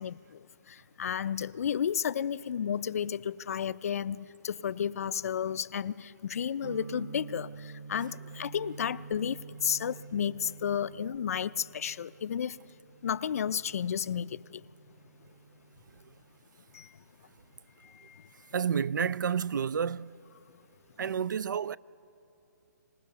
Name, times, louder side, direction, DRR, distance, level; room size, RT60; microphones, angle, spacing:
voice 1, 0.0-12.6 13.0-14.6 16.7-16.9 17.8-18.3, left 8 dB, 50° left, 0.4 m, -32 dB
sound 1, 6.6-16.4, right 5 dB, 40° right, 1.0 m, -48 dB
voice 2, 18.5-20.2 21.0-21.8, right 7 dB, 90° right, 0.4 m, -30 dB
24.0 x 20.0 x 6.7 m
hypercardioid pair, 165°, 10 cm